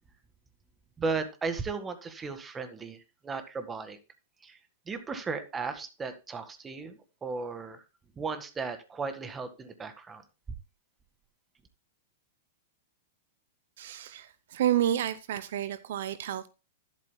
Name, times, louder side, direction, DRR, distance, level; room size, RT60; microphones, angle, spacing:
voice 1, 1.0-3.0 3.2-4.0 4.4-4.6 4.9-7.8 8.2-10.2, right 4 dB, 15° right, 1.8 m, -35 dB
voice 2, 13.8-16.5, right 11 dB, 65° right, 0.7 m, -30 dB
13.0 x 11.5 x 2.3 m
hypercardioid pair, 115°, 0 cm